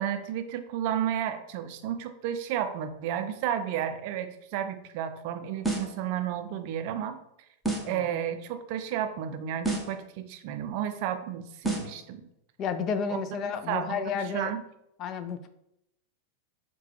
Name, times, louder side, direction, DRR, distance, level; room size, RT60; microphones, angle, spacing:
voice 1, 0.0-7.2 7.8-12.2 13.1-13.2 13.7-14.6, right 10 dB, 45° right, 8 dB, 0.4 m, -32 dB
sound 1, 5.6-6.0 7.6-8.0 9.6-10.0 11.6-12.0, right 2 dB, ahead, 0.7 m, -30 dB
voice 2, 7.9-8.3 12.6-14.5 15.0-15.5, left 6 dB, 35° left, 11 dB, 0.3 m, -32 dB
4.6 x 2.2 x 3.2 m, 0.82 s
figure-of-eight pair, 90°, 0 cm